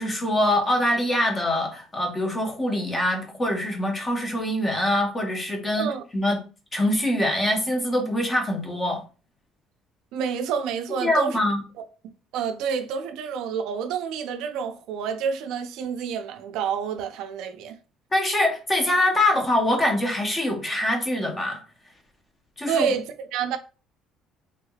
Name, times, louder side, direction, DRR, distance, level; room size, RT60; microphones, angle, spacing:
voice 1, 0.0-5.9 6.1-6.4 6.7-9.0 11.0-11.6 18.1-21.6 22.6-22.9, left 1 dB, 15° left, 0.7 m, -24 dB
voice 2, 10.1-11.4 12.3-17.8 22.7-23.6, right 7 dB, 70° right, 0.5 m, -28 dB
3.5 x 3.3 x 2.3 m
cardioid pair, 175°, 0 cm